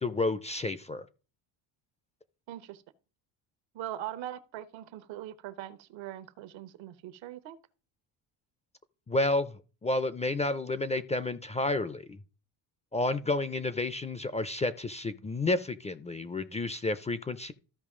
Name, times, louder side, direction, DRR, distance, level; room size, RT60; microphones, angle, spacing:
voice 1, 0.0-1.0 9.1-12.2 12.9-17.5, left 2 dB, 15° left, 0.3 m, -30 dB
voice 2, 2.5-2.8 3.7-7.6, right 12 dB, 80° right, 1.1 m, -41 dB
14.0 x 5.3 x 3.6 m
cardioid pair, 130°, 45 cm